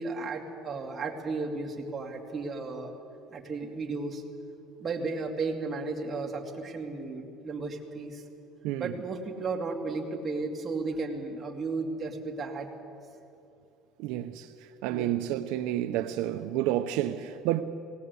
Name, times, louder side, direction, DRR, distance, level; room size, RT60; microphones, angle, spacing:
voice 1, 0.0-2.9 3.3-4.2 4.8-8.2 8.8-12.7 14.9-15.1, right 3 dB, 25° right, 2.4 m, -34 dB
voice 2, 14.0-17.6, right 13 dB, 75° right, 0.7 m, -30 dB
19.0 x 18.5 x 8.3 m
cardioid pair, 145°, 0 cm